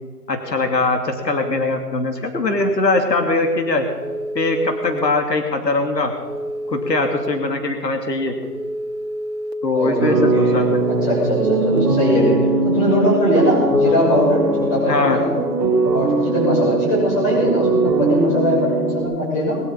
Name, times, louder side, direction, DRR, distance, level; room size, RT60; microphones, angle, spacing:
voice 1, 0.3-3.9 4.3-6.1 6.7-8.3 9.6-10.8 14.9-15.2, left 2 dB, 85° left, 4 dB, 2.7 m, -21 dB
Telephone, 3.9-5.0 6.2-7.3 8.4-9.5 10.7-11.8, equal, 40° right, 1.9 m, -29 dB
voice 2, 9.7-15.3 15.9-19.6, equal, 20° left, -4 dB, 6.6 m, -20 dB
sound 1, 10.0-19.0, right 2 dB, 10° right, 1.6 m, -20 dB
21.0 x 12.0 x 5.7 m, 1.5 s
hypercardioid pair, 165°, 49 cm